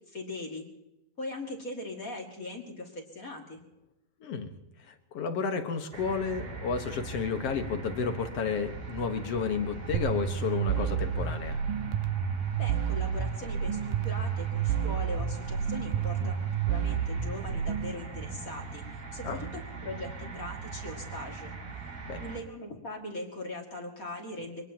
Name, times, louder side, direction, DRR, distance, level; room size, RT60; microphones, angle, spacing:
voice 1, 0.1-0.6 1.2-3.6 12.6-16.4 16.7-18.8 19.1-21.5 22.2-24.7, left 2 dB, 30° left, 1 dB, 2.0 m, -40 dB
voice 2, 4.2-4.5 4.9-11.6 16.2-16.3 19.2-19.4 22.1-22.3, left 5 dB, 55° left, 6 dB, 1.9 m, -32 dB
sound 1, 5.9-22.4, right 4 dB, 50° right, 3.2 m, -41 dB
sound 2, 9.9-18.0, right 8 dB, 80° right, 2.5 m, -30 dB
24.5 x 20.0 x 2.9 m, 0.92 s
omnidirectional pair, 4.1 m